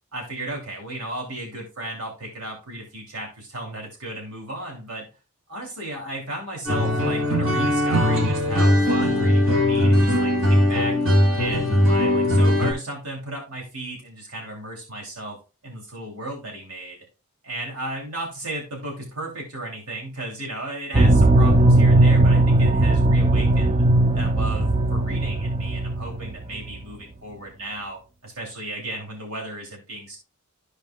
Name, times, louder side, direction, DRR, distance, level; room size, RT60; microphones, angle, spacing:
voice 1, 0.1-5.1 5.5-11.0 11.3-15.4 15.6-17.0 17.4-23.8 24.1-30.2, right 1 dB, 80° right, -1 dB, 2.9 m, -34 dB
sound 1, 6.6-12.7, left 1 dB, 60° right, 2.6 m, -19 dB
sound 2, 20.9-26.4 26.6-26.8, right 2 dB, 30° right, 0.6 m, -18 dB
14.0 x 4.9 x 2.3 m, 0.31 s
head